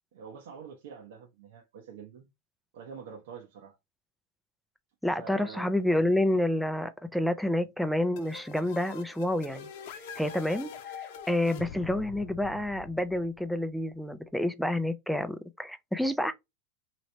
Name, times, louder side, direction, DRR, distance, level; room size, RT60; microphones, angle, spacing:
voice 1, 0.1-2.3 2.7-3.8 5.2-5.7 6.0-6.2, right 6 dB, 80° right, 0.9 m, -46 dB
voice 2, 5.0-9.7 10.2-16.3, left 1 dB, ahead, 0.4 m, -29 dB
sound 1, 8.2-13.8, left 7 dB, 70° left, 0.7 m, -44 dB
3.1 x 2.9 x 2.7 m
supercardioid pair, 140°, 0 cm